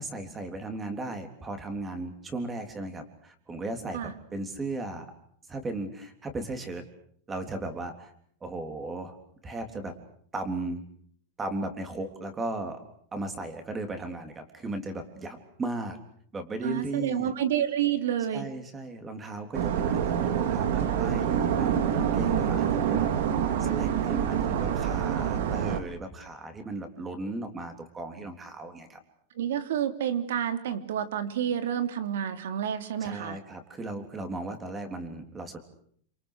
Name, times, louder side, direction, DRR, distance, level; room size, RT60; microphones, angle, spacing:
voice 1, 0.0-5.1 5.5-6.9 7.3-8.1 8.4-9.2 9.4-9.9 10.3-10.8 11.4-12.8 13.1-16.0 16.3-17.3 18.3-23.1 23.6-29.0 33.0-35.6, right 2 dB, 15° right, 7 dB, 3.5 m, -36 dB
voice 2, 16.6-18.5 29.4-33.4, right 9 dB, 80° right, 9 dB, 3.5 m, -29 dB
sound 1, 19.5-25.8, right 9 dB, 60° right, 2.7 m, -26 dB
28.5 x 27.0 x 6.6 m, 0.63 s
supercardioid pair, 165°, 0 cm